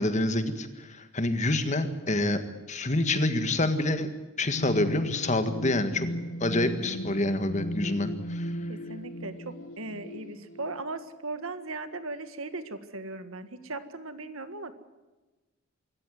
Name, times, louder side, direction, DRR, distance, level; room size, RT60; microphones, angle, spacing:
voice 1, 0.0-2.4 2.7-4.1 4.4-6.1 6.4-8.6, left 2 dB, 35° left, 9 dB, 1.7 m, -27 dB
sound 1, 4.5-10.8, left 1 dB, 70° left, 1.2 m, -36 dB
voice 2, 8.7-14.7, right 2 dB, 75° right, 10 dB, 1.8 m, -38 dB
25.5 x 14.0 x 9.5 m, 1.2 s
head